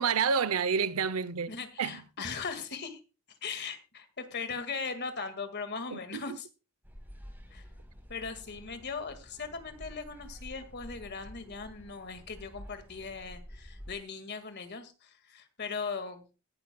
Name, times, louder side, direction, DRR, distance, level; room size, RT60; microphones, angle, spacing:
voice 1, 0.0-1.5 1.8-2.0 5.9-6.2, right 6 dB, 85° right, 0.6 m, -29 dB
voice 2, 1.5-3.0 3.4-6.5 7.5-7.7 8.1-16.3, left 5 dB, 50° left, 1.9 m, -39 dB
sound 1, 6.8-13.9, equal, 10° right, 3.6 m, -49 dB
18.0 x 11.5 x 2.2 m
head